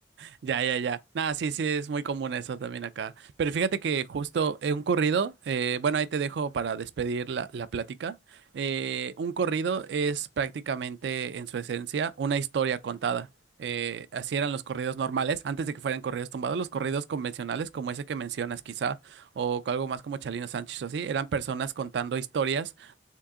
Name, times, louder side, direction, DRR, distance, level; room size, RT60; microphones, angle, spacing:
voice 1, 0.2-13.3 13.6-23.0, right 6 dB, 70° right, 0.4 m, -30 dB
3.7 x 2.7 x 3.5 m
head